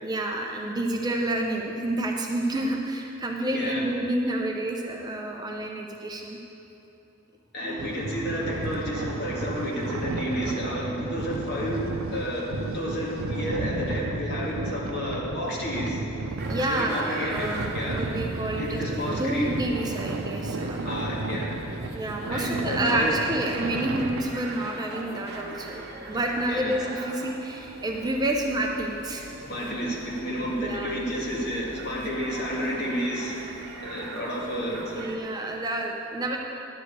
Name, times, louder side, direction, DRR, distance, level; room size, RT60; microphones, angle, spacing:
voice 1, 0.0-6.4 7.6-8.0 16.5-20.9 21.9-29.3 30.6-30.9 35.0-36.4, right 1 dB, 20° right, 1 dB, 0.5 m, -29 dB
voice 2, 3.5-3.8 7.5-16.0 16.7-17.5 17.7-18.0 18.6-19.5 20.8-21.6 22.3-23.2 26.5-26.8 29.4-33.5 33.8-35.1, equal, 50° left, -4 dB, 2.0 m, -31 dB
sound 1, 7.8-24.2, right 2 dB, 80° right, 0.6 m, -33 dB
sound 2, 16.4-35.2, right 3 dB, 50° right, 1.0 m, -41 dB
10.5 x 4.9 x 8.1 m, 3.0 s
head